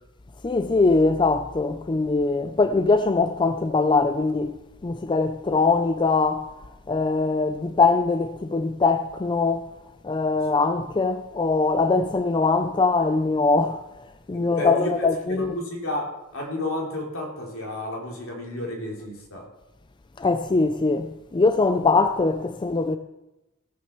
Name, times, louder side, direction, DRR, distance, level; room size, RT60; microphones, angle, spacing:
voice 1, 0.4-6.5 6.9-9.7 10.0-13.8 14.3-15.5 20.2-23.0, left 3 dB, 20° left, 0.4 m, -22 dB
voice 2, 14.3-14.9 15.3-19.4, left 1 dB, 70° left, 3.3 m, -31 dB
16.0 x 6.4 x 7.2 m
head